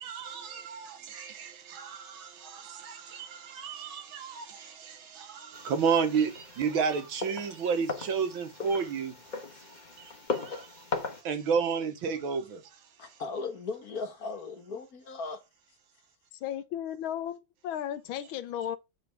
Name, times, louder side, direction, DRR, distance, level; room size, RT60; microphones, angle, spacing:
voice 1, 0.0-0.9 1.2-1.3 3.6-4.0 5.7-6.3 6.6-9.1 11.3-12.4, right 6 dB, 75° right, 1.9 m, -29 dB
sound 1, 5.5-11.2, left 4 dB, 30° left, 1.0 m, -38 dB
voice 2, 13.0-15.4, left 4 dB, 50° left, 1.6 m, -37 dB
voice 3, 16.3-18.8, left 10 dB, 75° left, 1.5 m, -35 dB
8.1 x 4.9 x 3.5 m
omnidirectional pair, 2.2 m